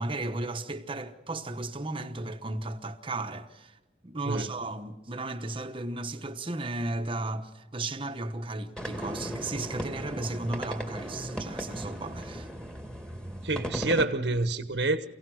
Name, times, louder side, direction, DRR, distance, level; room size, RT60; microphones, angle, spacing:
voice 1, 0.0-3.7 4.0-12.5, right 2 dB, 30° right, 1.1 m, -35 dB
sound 1, 8.8-14.0, equal, 5° left, 2.0 m, -37 dB
voice 2, 13.4-15.1, right 2 dB, 70° right, 1.2 m, -27 dB
28.0 x 17.0 x 6.4 m
head